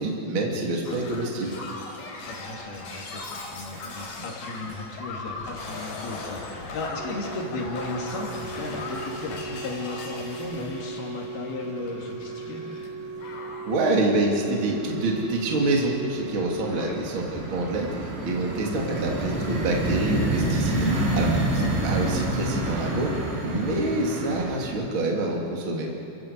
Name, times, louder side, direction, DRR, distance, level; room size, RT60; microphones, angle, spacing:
voice 1, 0.0-1.6 13.7-23.1 23.4-25.9, right 2 dB, 35° right, -1 dB, 3.1 m, -27 dB
Shatter, 0.9-12.9 13.2-13.8 14.8-15.0, left 3 dB, 65° left, 6.3 m, -39 dB
voice 2, 2.2-12.6 16.8-17.0 21.6-21.8, left 3 dB, 80° left, 0 dB, 4.6 m, -35 dB
Organ, 7.0-17.9 19.0-19.2, right 4 dB, 75° right, 2.5 m, -38 dB
sound 1, 11.6-12.2 12.5-13.2 13.6-24.7, right 2 dB, 60° right, 4.5 m, -28 dB
28.5 x 15.0 x 8.3 m, 2.9 s
omnidirectional pair, 4.3 m